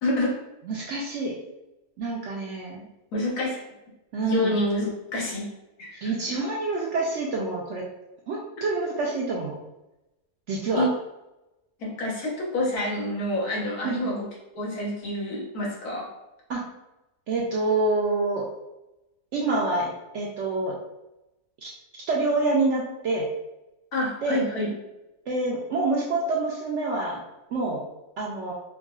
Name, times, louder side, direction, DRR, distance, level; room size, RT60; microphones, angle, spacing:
voice 1, 0.0-0.3 3.1-3.6 4.2-5.4 5.8-6.4 10.7-10.9 11.8-14.3 14.5-16.1 23.9-24.7, left 1 dB, 75° left, -4 dB, 1.6 m, -27 dB
voice 2, 0.7-1.3 2.0-2.9 4.1-4.6 6.0-7.8 8.3-9.5 10.5-10.9 13.8-14.1 16.5-16.6 17.3-18.5 19.3-20.7 21.6-21.7 22.1-23.2 24.2-24.4 25.3-27.2 27.5-27.8 28.2-28.5, right 3 dB, 65° right, -3 dB, 0.7 m, -27 dB
4.6 x 2.3 x 2.3 m, 0.93 s
omnidirectional pair, 1.6 m